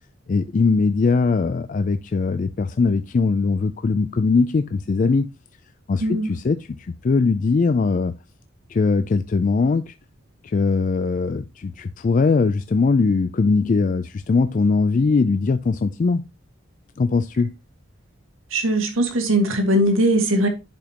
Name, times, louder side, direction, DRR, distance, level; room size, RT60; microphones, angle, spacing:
voice 1, 0.3-5.3 5.9-8.1 8.7-9.9 10.4-16.3 17.0-17.5, left 4 dB, 40° left, 0.3 m, -20 dB
voice 2, 6.0-6.3 18.5-20.5, right 1 dB, 85° right, 1.9 m, -20 dB
10.5 x 5.0 x 2.9 m
head